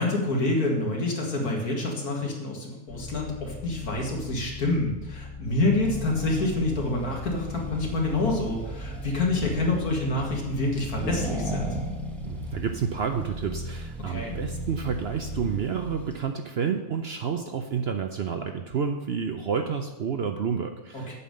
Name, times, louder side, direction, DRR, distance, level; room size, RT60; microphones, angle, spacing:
voice 1, 0.0-11.7 14.1-14.4 20.9-21.2, left 2 dB, 80° left, -1 dB, 2.4 m, -27 dB
sound 1, 2.9-11.3, left 4 dB, 55° left, 2.4 m, -41 dB
Accelerating revving vroom, 5.8-16.2, equal, ahead, 1.1 m, -36 dB
voice 2, 12.2-21.2, right 6 dB, 55° right, 6 dB, 0.7 m, -30 dB
8.3 x 5.5 x 7.6 m, 1.0 s
omnidirectional pair, 1.6 m